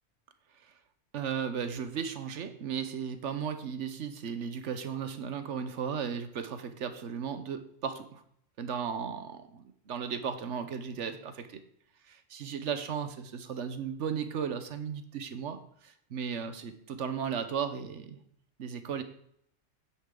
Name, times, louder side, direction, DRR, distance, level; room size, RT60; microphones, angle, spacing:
voice 1, 1.1-8.2 8.6-11.6 12.1-18.2 18.6-19.0, right 7 dB, 70° right, 10 dB, 1.2 m, -35 dB
9.7 x 8.8 x 3.8 m, 0.68 s
omnidirectional pair, 1.3 m